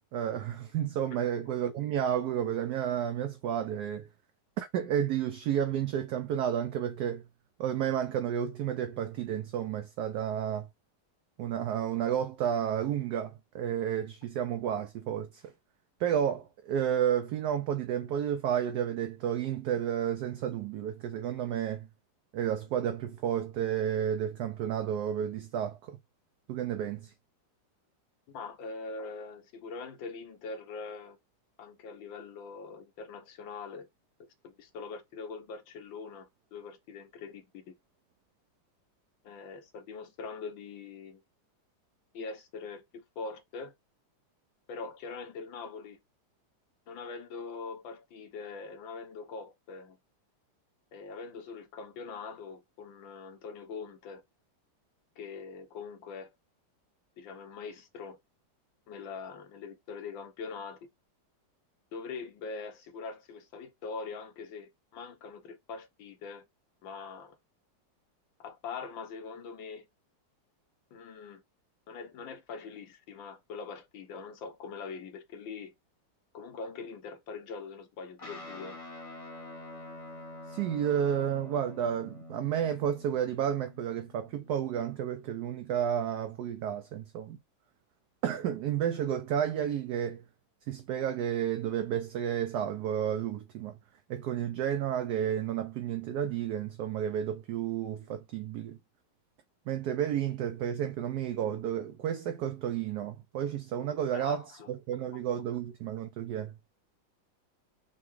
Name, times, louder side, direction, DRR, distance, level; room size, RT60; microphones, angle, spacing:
voice 1, 0.1-4.1 4.6-7.2 7.6-10.7 11.4-15.5 16.0-21.9 22.3-26.0 26.5-27.1 80.5-87.4 88.2-90.2 90.7-93.8 94.1-98.8 99.7-104.4 104.7-106.5, right 9 dB, 75° right, 1.0 m, -31 dB
voice 2, 28.3-31.2 31.6-33.9 34.4-37.7 39.2-41.2 42.1-42.8 43.2-43.7 44.7-46.0 46.9-50.0 50.9-54.2 55.2-56.3 57.2-58.2 58.9-60.8 61.9-66.4 66.8-67.4 68.4-69.9 70.9-71.4 71.9-75.7 76.3-78.8 104.1-104.7, left 4 dB, 80° left, 1.7 m, -42 dB
Guitar, 78.2-86.9, left 1 dB, 25° left, 0.9 m, -48 dB
5.8 x 2.3 x 3.1 m
omnidirectional pair, 2.0 m